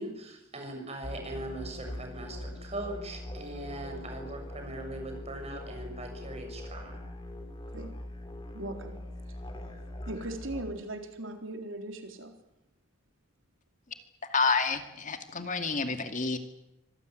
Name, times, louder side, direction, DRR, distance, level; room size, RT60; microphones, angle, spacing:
voice 1, 0.0-6.9, right 1 dB, 30° right, 4 dB, 6.7 m, -40 dB
sound 1, 1.0-10.6, left 1 dB, 25° left, 3.2 m, -42 dB
voice 2, 8.5-9.0 10.1-12.4, right 1 dB, 75° right, 5 dB, 3.8 m, -38 dB
voice 3, 14.3-16.4, left 4 dB, 40° left, 8 dB, 2.3 m, -29 dB
25.5 x 19.5 x 9.4 m, 0.86 s
head